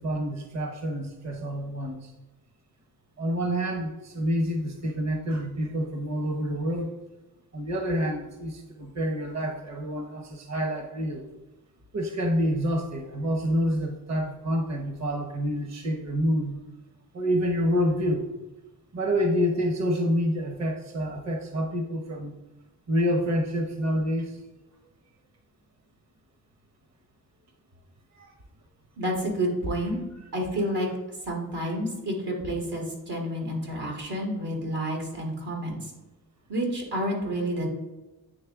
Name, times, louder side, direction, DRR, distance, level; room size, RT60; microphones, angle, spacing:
voice 1, 0.0-2.0 3.2-6.9 7.5-11.2 11.9-16.7 17.1-18.3 18.9-22.3 22.9-24.3, equal, 45° right, 4 dB, 0.8 m, -27 dB
voice 2, 29.0-30.0 30.3-30.9 31.3-35.8 36.5-37.7, equal, 80° right, 0 dB, 1.8 m, -29 dB
8.9 x 3.2 x 3.5 m, 1.1 s
cardioid pair, 55°, 39 cm